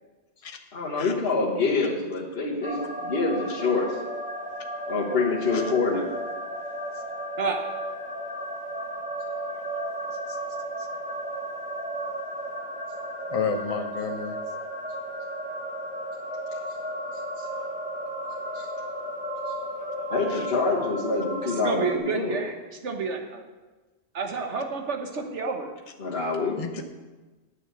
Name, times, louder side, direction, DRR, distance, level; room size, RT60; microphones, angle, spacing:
voice 1, 0.7-3.9 4.9-6.1 17.4-17.5 18.5-18.7 19.8-22.4 26.0-26.6, left 3 dB, 60° left, -5 dB, 1.7 m, -26 dB
sound 1, 2.6-22.0, equal, 10° right, 0.9 m, -34 dB
voice 2, 13.3-14.4 20.3-20.5 26.6-26.8, left 5 dB, 35° left, 5 dB, 0.9 m, -31 dB
voice 3, 21.4-22.6 22.8-23.4 24.1-25.7, right 4 dB, 80° right, 4 dB, 1.5 m, -29 dB
9.2 x 6.5 x 7.9 m, 1.2 s
omnidirectional pair, 1.2 m